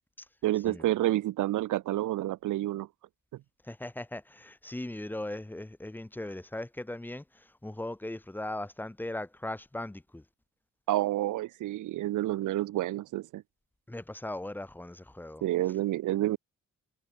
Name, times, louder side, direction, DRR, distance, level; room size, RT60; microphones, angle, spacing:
voice 1, 0.4-2.9 10.9-13.4 15.4-16.4, right 15 dB, 80° right, 0.5 m, -29 dB
voice 2, 3.6-10.2 13.9-15.4, left 1 dB, 5° left, 0.7 m, -39 dB
cardioid pair, 95°, 31 cm